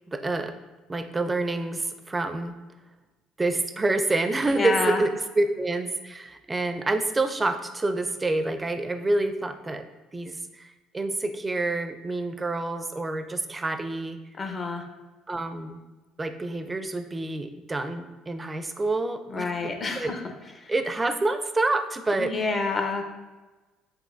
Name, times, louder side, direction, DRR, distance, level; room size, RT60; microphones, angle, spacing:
voice 1, 0.1-0.5 0.9-2.6 3.4-9.9 10.1-14.2 15.3-15.8 16.2-20.2 20.7-22.3, right 2 dB, 20° right, 8 dB, 0.5 m, -28 dB
voice 2, 4.5-5.0 14.4-14.9 19.3-20.2 22.2-23.0, left 3 dB, 35° left, 4 dB, 0.9 m, -28 dB
7.6 x 2.7 x 2.6 m, 1.2 s
hypercardioid pair, 65°, 0 cm